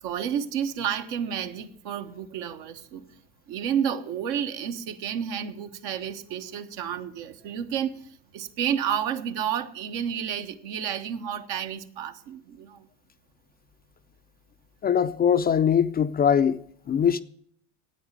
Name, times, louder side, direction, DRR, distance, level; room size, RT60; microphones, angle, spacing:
voice 1, 0.0-3.0 3.5-12.9, right 8 dB, 65° right, 1.4 m, -31 dB
voice 2, 14.8-16.6 16.9-17.2, left 8 dB, 25° left, 0.5 m, -21 dB
9.3 x 9.1 x 9.2 m
supercardioid pair, 95°, 38 cm